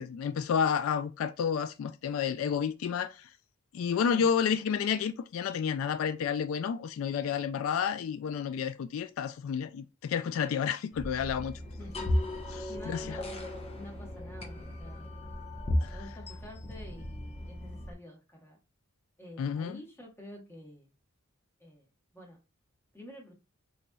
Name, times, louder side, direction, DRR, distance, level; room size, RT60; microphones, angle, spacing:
voice 1, 0.0-3.3 3.7-11.5 12.5-13.2 15.8-16.0 19.4-19.8, left 7 dB, 75° left, 0.3 m, -30 dB
sound 1, 10.9-17.9, left 1 dB, 30° left, 0.8 m, -35 dB
voice 2, 11.8-12.2 12.7-18.6 19.2-20.9 21.6-22.4 22.9-23.3, left 1 dB, 10° left, 1.1 m, -49 dB
3.9 x 3.0 x 2.3 m
head